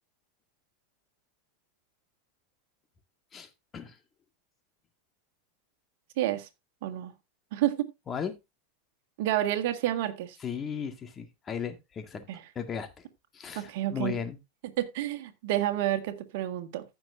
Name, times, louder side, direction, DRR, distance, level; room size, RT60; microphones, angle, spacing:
voice 1, 3.3-4.0 8.1-8.3 10.4-12.2 12.6-12.9 13.3-14.4, left 7 dB, 30° left, 1.8 m, -36 dB
voice 2, 6.2-6.5 6.8-7.1 7.5-7.8 9.2-10.4 12.3-12.4 13.6-14.2 14.8-16.8, right 13 dB, 65° right, 1.7 m, -29 dB
15.0 x 6.2 x 2.6 m
hypercardioid pair, 105°, 0 cm